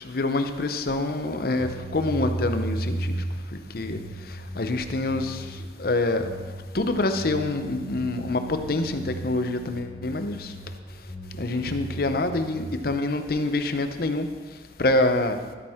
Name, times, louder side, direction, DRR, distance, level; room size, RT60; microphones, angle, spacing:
voice 1, 0.0-3.1 3.7-4.0 4.6-5.4 5.8-6.3 6.7-10.5 11.4-14.3 14.8-15.4, left 2 dB, 55° left, 8 dB, 0.7 m, -26 dB
sound 1, 1.5-12.7, right 1 dB, 70° left, 2.7 m, -35 dB
12.5 x 8.7 x 3.6 m, 1.4 s
head